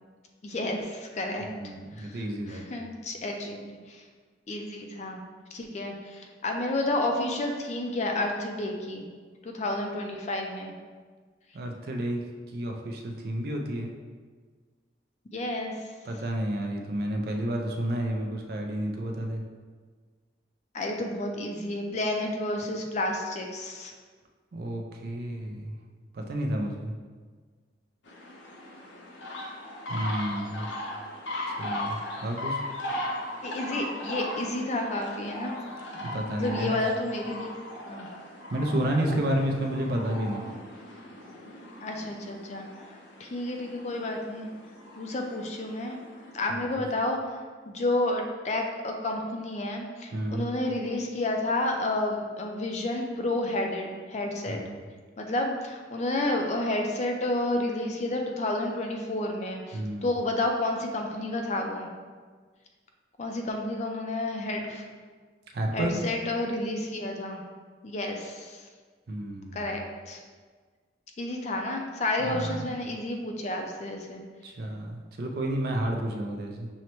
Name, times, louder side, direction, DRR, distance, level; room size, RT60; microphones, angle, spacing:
voice 1, 0.4-1.5 2.0-2.2 2.5-4.0 4.5-5.2 5.5-9.1 9.4-10.7 15.3-15.9 20.7-23.9 33.4-35.6 36.3-37.6 37.9-38.1 41.8-42.7 43.2-44.5 45.0-46.0 46.3-47.2 47.7-54.6 55.2-61.9 63.2-64.8 65.7-67.4 67.8-68.6 69.5-70.2 71.2-74.2, left 2 dB, 35° left, 2 dB, 0.4 m, -30 dB
voice 2, 1.6-2.6 11.5-12.2 12.5-13.9 16.1-19.4 24.5-25.8 26.1-26.9 29.9-30.7 31.6-32.6 35.9-36.8 38.5-40.4 46.5-46.8 50.1-50.5 54.5-54.8 59.7-60.1 65.5-66.0 69.1-69.8 72.2-72.6 74.4-76.7, right 1 dB, 55° right, 2 dB, 0.4 m, -31 dB
sound 1, 28.1-46.3, left 1 dB, 80° left, 0.7 m, -38 dB
6.2 x 2.1 x 2.9 m, 1.5 s
head